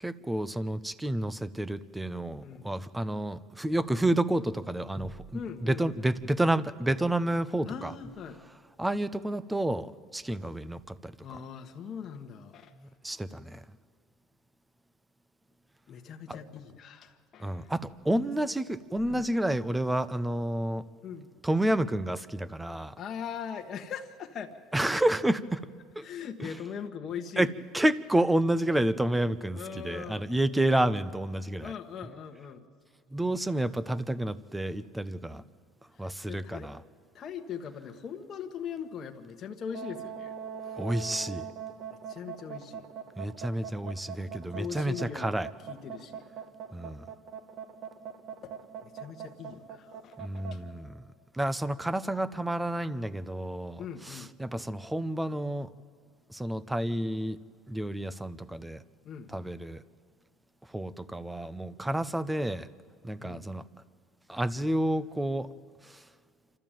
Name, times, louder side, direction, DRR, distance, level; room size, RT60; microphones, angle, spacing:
voice 1, 0.0-7.9 8.8-11.4 13.0-13.6 17.4-20.8 21.4-23.0 24.7-25.6 26.0-26.1 26.4-26.5 27.4-31.7 33.1-35.4 36.0-36.8 40.8-41.5 43.2-45.5 46.7-47.1 50.2-51.1 51.3-55.7 56.3-57.4 57.7-58.8 59.3-59.8 60.7-62.7 63.0-63.6 64.3-65.5 65.8-66.0, right 1 dB, 5° right, 17 dB, 0.7 m, -30 dB
voice 2, 5.3-6.1 7.7-8.4 11.2-12.7 15.9-17.7 19.1-19.2 21.0-21.3 23.0-24.6 26.0-27.5 29.5-30.3 31.6-32.6 35.3-35.5 36.0-36.7 37.1-40.3 40.6-40.8 42.1-42.9 44.5-45.3 45.7-46.2 48.4-48.5 48.8-50.3 53.8-54.3 59.0-59.5 61.9-62.0 63.2-63.4, left 7 dB, 40° left, 3 dB, 1.3 m, -40 dB
sound 1, 39.7-50.6, right 8 dB, 65° right, 1.8 m, -41 dB
27.0 x 13.0 x 9.0 m, 2.1 s
supercardioid pair, 115°, 0 cm